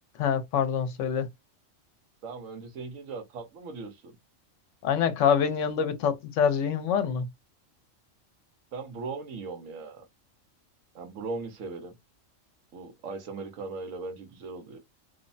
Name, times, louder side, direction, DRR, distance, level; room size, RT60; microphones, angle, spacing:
voice 1, 0.2-1.3 4.8-7.3, left 7 dB, 75° left, 0.9 m, -25 dB
voice 2, 2.2-4.2 8.7-10.0 10.9-12.0 12.7-14.8, right 4 dB, 90° right, 1.2 m, -38 dB
3.1 x 2.0 x 2.5 m
omnidirectional pair, 1.3 m